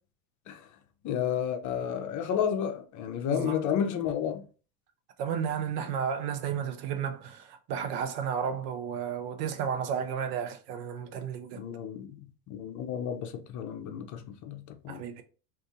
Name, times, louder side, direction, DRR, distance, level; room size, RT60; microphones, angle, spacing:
voice 1, 1.0-4.4 11.6-12.2 12.5-15.0, left 8 dB, 35° left, 0.6 m, -31 dB
voice 2, 3.3-3.6 5.2-11.6 14.9-15.2, right 7 dB, 70° right, 0.8 m, -33 dB
2.6 x 2.6 x 3.6 m
hypercardioid pair, 100°, 49 cm